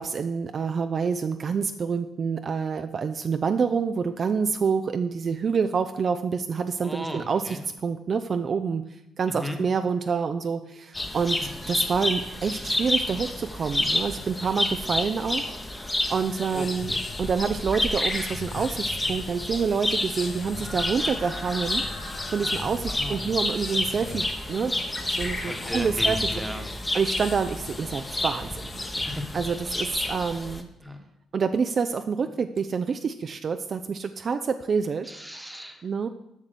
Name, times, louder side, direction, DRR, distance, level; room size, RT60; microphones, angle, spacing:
voice 1, 0.0-15.4 15.7-16.9 17.2-21.8 22.3-24.7 25.1-26.2 26.5-29.0 29.3-30.7 31.3-35.1 35.8-36.1, right 5 dB, 45° right, 9 dB, 0.4 m, -27 dB
voice 2, 6.8-7.6 9.4-9.6 16.0-16.2 16.5-17.0 22.9-23.4 25.4-26.6 29.0-29.4 30.8-31.0 35.1-35.8, equal, 5° right, 5 dB, 1.2 m, -36 dB
sound 1, 10.9-30.6, left 1 dB, 15° left, 0.9 m, -30 dB
sound 2, 15.8-29.7, left 6 dB, 55° left, 0.6 m, -44 dB
7.4 x 6.0 x 6.7 m, 0.87 s
cardioid pair, 90°, 0 cm